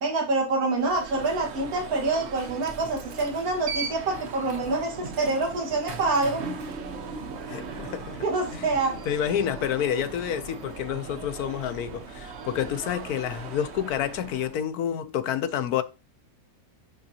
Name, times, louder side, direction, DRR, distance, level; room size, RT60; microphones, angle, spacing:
voice 1, 0.0-6.4 8.2-9.0, right 3 dB, 75° right, 2.2 m, -26 dB
Alarm, 0.7-14.7, right 4 dB, 55° right, 1.0 m, -38 dB
voice 2, 7.5-8.2 8.5-8.7 9.1-15.8, left 9 dB, 85° left, 1.2 m, -29 dB
10.5 x 3.8 x 2.8 m
omnidirectional pair, 1.6 m